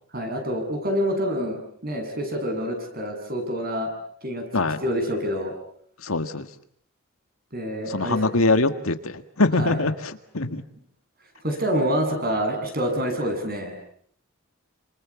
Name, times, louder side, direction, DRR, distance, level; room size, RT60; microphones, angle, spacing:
voice 1, 0.1-3.9 4.2-4.4 4.8-5.5 7.5-8.2 9.6-9.8 11.4-13.7, equal, 45° right, 4 dB, 7.5 m, -27 dB
voice 2, 6.0-6.5 7.9-10.6, left 3 dB, 80° left, 8 dB, 1.9 m, -23 dB
29.5 x 27.0 x 7.2 m, 0.63 s
head